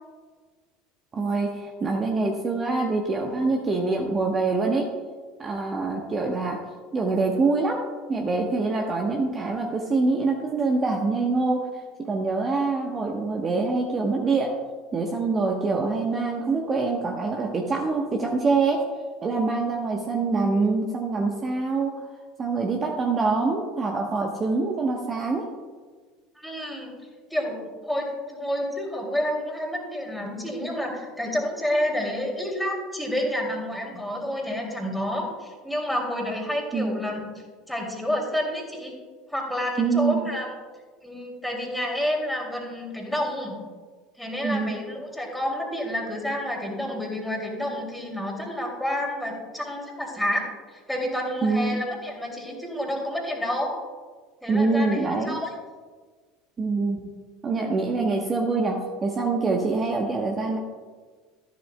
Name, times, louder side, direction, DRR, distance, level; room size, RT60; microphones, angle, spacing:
voice 1, 1.1-4.9 5.4-6.6 6.9-7.8 8.1-14.5 14.9-18.8 19.2-22.0 22.4-25.5 36.7-37.0 39.8-40.3 44.4-44.8 51.4-51.8 54.5-55.4 56.6-57.1 57.4-60.6, right 3 dB, 25° right, 1 dB, 1.0 m, -25 dB
voice 2, 26.4-26.9 27.3-38.9 39.3-40.5 41.0-43.6 44.2-53.7 54.4-55.5, left 1 dB, ahead, 0 dB, 2.6 m, -29 dB
13.0 x 11.0 x 2.2 m, 1.5 s
figure-of-eight pair, 70°, 0 cm